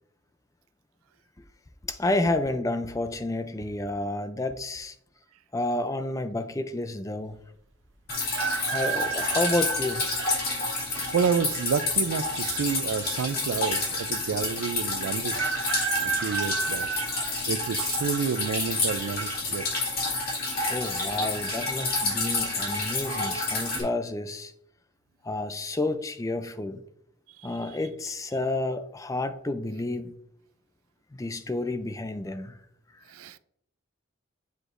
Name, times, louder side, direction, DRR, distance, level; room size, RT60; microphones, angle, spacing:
voice 1, 1.8-4.9 5.5-7.4 8.6-10.1 20.7-24.5 25.2-26.8 27.4-30.1 31.1-32.6, left 2 dB, 15° left, 0.3 m, -30 dB
Drip, 8.1-23.8, left 3 dB, 45° left, 2.4 m, -29 dB
sound 1, 8.3-10.3 11.0-11.1 12.2-12.8 13.1-13.2 13.4-13.5 15.3-17.9 18.4-18.9 20.0-20.3 20.6-20.7 21.2-21.6 22.1-22.3, right 6 dB, 60° right, 0.7 m, -31 dB
voice 2, 10.9-15.4 15.7-16.9 17.5-19.6 33.1-33.4, right 6 dB, 85° right, 0.4 m, -29 dB
8.0 x 4.9 x 2.5 m
head